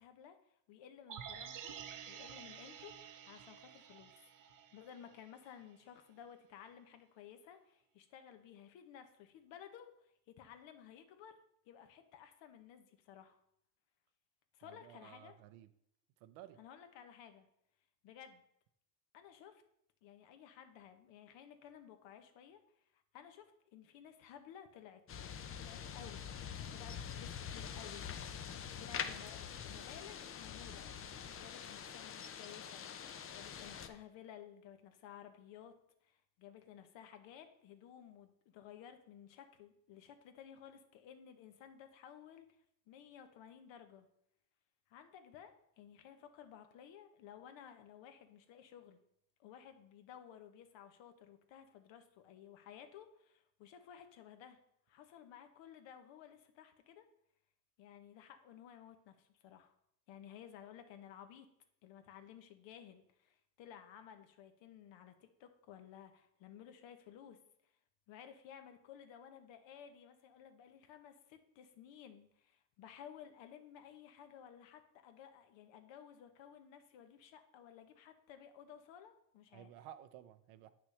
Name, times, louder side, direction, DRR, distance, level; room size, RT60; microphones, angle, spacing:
voice 1, 0.0-1.7 2.1-3.0 3.2-4.1 4.4-11.4 11.7-13.4 14.5-15.4 16.6-17.5 18.0-18.4 19.1-19.6 20.0-22.6 22.9-25.0 25.6-26.3 26.7-28.4 28.7-30.9 31.4-35.7 36.0-42.5 42.9-44.1 44.9-49.0 49.4-54.6 54.9-57.0 57.8-59.7 60.1-61.5 61.8-67.4 67.6-67.7 68.1-79.7, left 9 dB, 65° left, 8 dB, 1.0 m, -56 dB
sound 1, 1.1-5.3 5.6-5.7, right 8 dB, 40° right, 0.7 m, -50 dB
voice 2, 14.6-15.7 16.2-16.6 79.5-80.7, right 11 dB, 75° right, 11 dB, 0.7 m, -55 dB
sound 2, 25.1-33.9, left 8 dB, 30° left, 0.5 m, -45 dB
8.3 x 6.0 x 3.2 m, 0.74 s
supercardioid pair, 95°, 48 cm